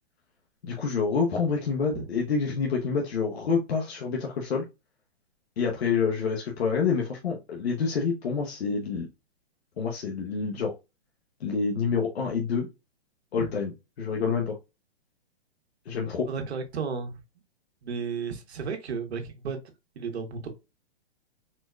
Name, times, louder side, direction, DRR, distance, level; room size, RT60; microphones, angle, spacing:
voice 1, 0.6-4.6 5.6-9.1 9.8-10.8 11.4-12.7 13.3-13.7 14.0-14.6 15.9-16.3, left 5 dB, 75° left, 1.0 m, -27 dB
voice 2, 16.3-17.2 17.8-19.6 19.9-20.5, right 5 dB, 85° right, 1.2 m, -33 dB
4.3 x 2.3 x 2.5 m
hypercardioid pair, 180°, 32 cm